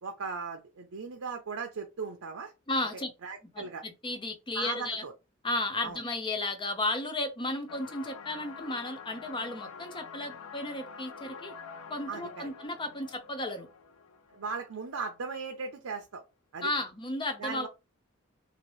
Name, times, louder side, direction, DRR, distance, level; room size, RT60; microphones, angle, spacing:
voice 1, 0.0-2.5 3.2-3.8 4.5-5.1 5.8-6.0 12.1-12.5 14.3-16.2 16.5-16.7 17.4-17.7, right 5 dB, 75° right, 0.6 m, -37 dB
voice 2, 2.7-3.1 3.5-5.0 5.4-11.5 11.9-13.7 16.6-17.7, left 2 dB, 25° left, 0.6 m, -34 dB
sound 1, 7.7-15.2, left 5 dB, 85° left, 0.4 m, -47 dB
2.9 x 2.8 x 3.1 m
head